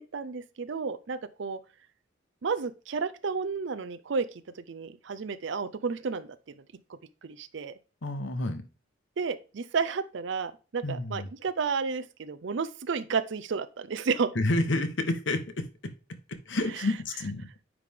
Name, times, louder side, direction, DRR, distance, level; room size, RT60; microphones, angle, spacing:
voice 1, 0.1-1.6 2.4-4.3 4.6-6.3 7.2-7.7 9.2-14.3, right 5 dB, 65° right, 0.5 m, -31 dB
voice 2, 8.0-8.6 10.8-11.3 14.3-15.9 16.3-17.5, left 2 dB, 65° left, 1.0 m, -29 dB
9.6 x 3.3 x 3.5 m
head